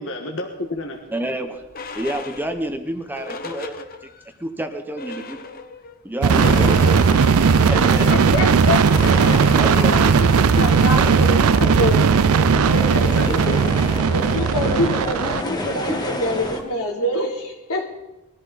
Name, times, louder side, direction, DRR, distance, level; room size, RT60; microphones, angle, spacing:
voice 1, 0.0-1.0 6.4-7.1 7.7-8.6 9.2-9.7 10.6-10.9 12.7-13.6, left 1 dB, 60° left, 2 dB, 1.6 m, -30 dB
sound 1, 0.7-4.4 4.7-4.8 5.0-6.0 6.4-16.8, left 3 dB, 40° left, 1.0 m, -40 dB
voice 2, 1.1-1.6 1.9-3.9 4.4-5.4 6.0-6.7 7.7-8.1 9.5-10.3 10.7-11.0 13.3-13.7 15.5-15.7, right 1 dB, 10° right, 7 dB, 1.0 m, -29 dB
sound 2, 6.2-15.4, right 5 dB, 75° right, 0.4 m, -17 dB
sound 3, 6.3-16.6, left 1 dB, 20° left, 1.6 m, -30 dB
voice 3, 7.8-13.6 14.1-17.9, left 1 dB, 90° left, -1 dB, 3.5 m, -27 dB
22.0 x 14.5 x 4.2 m, 1.0 s
head